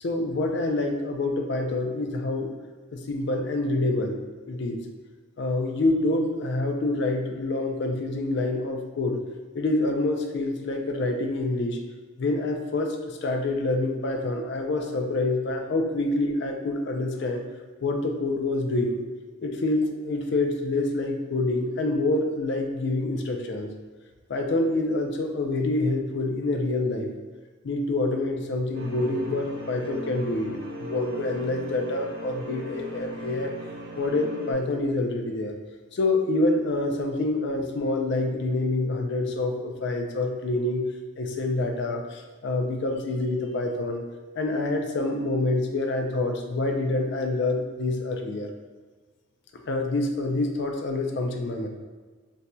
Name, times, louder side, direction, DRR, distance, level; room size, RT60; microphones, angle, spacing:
voice 1, 0.0-2.5 2.9-4.2 4.5-4.8 5.4-9.2 9.5-11.8 12.2-17.4 17.8-19.0 19.4-23.7 24.3-27.1 27.6-33.5 34.0-35.5 35.9-40.8 41.2-44.0 44.4-48.5 49.7-51.7, left 2 dB, 55° left, 3 dB, 0.4 m, -27 dB
sound 1, 28.7-34.5, equal, 65° right, 0.5 m, -38 dB
4.2 x 2.6 x 2.2 m, 1.4 s
head